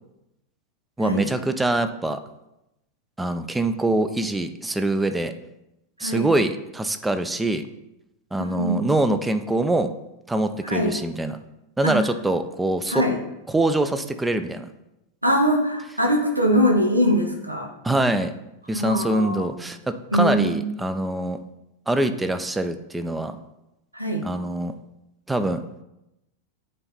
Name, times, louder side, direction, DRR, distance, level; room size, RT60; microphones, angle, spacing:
voice 1, 1.0-2.2 3.2-5.3 6.0-7.7 8.3-9.9 10.3-11.4 11.8-13.0 13.5-14.7 17.8-18.3 18.7-21.4 21.9-23.4 24.2-24.7 25.3-25.6, right 1 dB, 10° right, 9 dB, 0.5 m, -24 dB
voice 2, 8.4-8.8 10.6-11.0 11.8-12.0 12.9-13.2 15.2-17.7 18.7-19.7 20.1-20.7 23.9-24.3, equal, 85° right, 2 dB, 1.0 m, -22 dB
8.8 x 3.9 x 4.1 m, 0.90 s
figure-of-eight pair, 90°, 0 cm